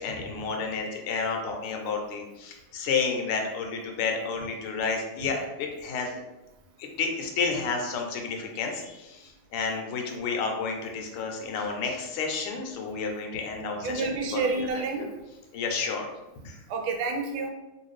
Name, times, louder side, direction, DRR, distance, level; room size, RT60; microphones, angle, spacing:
voice 1, 0.0-6.1 6.8-14.4 14.7-15.0 15.5-16.1 16.4-16.6, left 5 dB, 80° left, 2 dB, 1.5 m, -31 dB
voice 2, 13.8-15.1 16.7-17.5, right 4 dB, 80° right, 3 dB, 1.4 m, -29 dB
3.2 x 3.1 x 3.1 m, 0.99 s
omnidirectional pair, 2.4 m